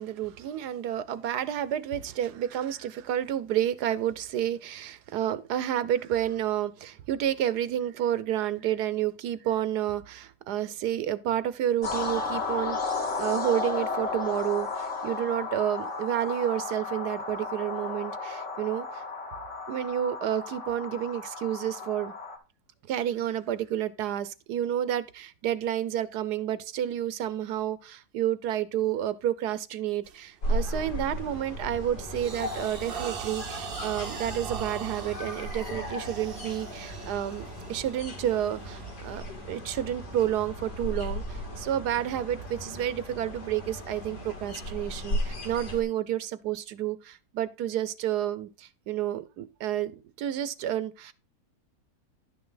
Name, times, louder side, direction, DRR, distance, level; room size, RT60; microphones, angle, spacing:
voice 1, 0.0-12.8 13.2-19.0 19.7-22.1 22.9-51.1, right 11 dB, 80° right, 1.3 m, -30 dB
sound 1, 11.8-22.4, left 3 dB, 45° left, 2.0 m, -33 dB
sound 2, 30.0-30.3 30.8-31.1 31.5-39.6, right 7 dB, 45° right, 0.8 m, -41 dB
sound 3, 30.4-45.8, equal, 85° left, 2.6 m, -36 dB
11.0 x 6.1 x 3.9 m
omnidirectional pair, 1.7 m